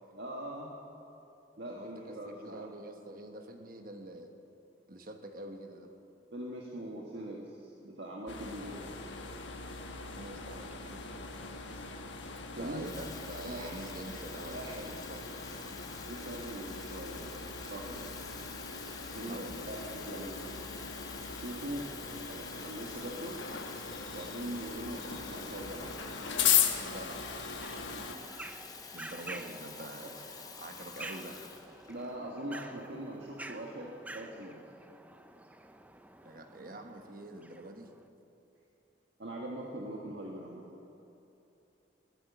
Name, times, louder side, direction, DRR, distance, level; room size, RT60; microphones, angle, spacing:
voice 1, 0.1-0.7 1.6-2.7 6.3-8.9 12.5-12.8 13.4-13.8 14.4-14.8 16.1-18.2 19.1-20.6 21.3-21.9 22.3-23.4 24.1-26.0 27.7-28.1 29.3-29.4 30.0-30.1 31.9-34.6 39.2-40.6, right 1 dB, 70° right, -2 dB, 1.6 m, -42 dB
voice 2, 1.7-4.3 4.9-5.9 10.2-11.2 12.5-15.5 19.3-19.7 26.8-27.4 28.9-31.5 36.2-37.9, right 1 dB, 50° right, 5 dB, 1.3 m, -46 dB
sound 1, 8.3-28.2, left 8 dB, 85° left, 1.3 m, -38 dB
Water tap faucet / Fill (with liquid), 12.3-32.1, left 5 dB, 20° left, 0.9 m, -48 dB
sound 2, 27.6-38.0, right 2 dB, 10° right, 0.4 m, -49 dB
21.5 x 9.1 x 7.0 m, 2.9 s
head